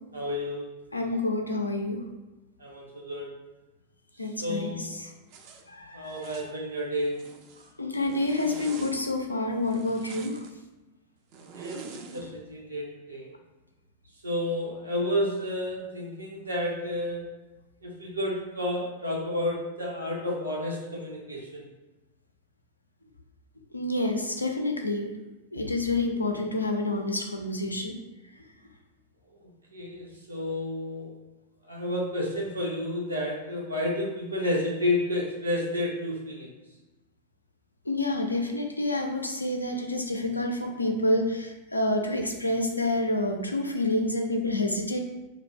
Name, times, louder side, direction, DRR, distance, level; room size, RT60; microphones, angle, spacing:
voice 1, 0.1-0.7 2.6-3.3 4.4-5.0 5.9-7.2 11.5-13.3 14.2-17.3 17.8-21.7 29.4-31.1 31.6-36.5, left 1 dB, 80° right, -3 dB, 0.6 m, -31 dB
voice 2, 0.9-2.0 4.2-4.7 5.0-5.1 5.7-6.3 7.8-10.4 23.7-25.1 25.5-28.0 37.9-45.0, left 2 dB, 85° left, 4 dB, 0.3 m, -28 dB
Zipper (clothing), 5.3-5.6 6.1-6.5 7.0-7.7 8.1-9.0 9.6-10.5 11.3-12.3, right 5 dB, 45° right, 0.3 m, -44 dB
2.4 x 2.0 x 3.4 m, 1.1 s
figure-of-eight pair, 90°, 0 cm